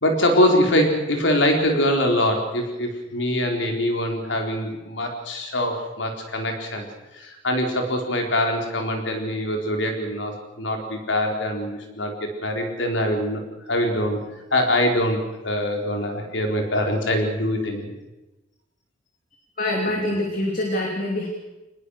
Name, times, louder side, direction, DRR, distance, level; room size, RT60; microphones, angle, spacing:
voice 1, 0.0-6.9 7.2-13.4 13.7-14.2 14.5-17.9, left 1 dB, 85° left, 3 dB, 4.3 m, -23 dB
voice 2, 19.6-21.3, left 1 dB, 50° left, 0 dB, 3.1 m, -25 dB
24.5 x 20.5 x 6.6 m, 1.0 s
head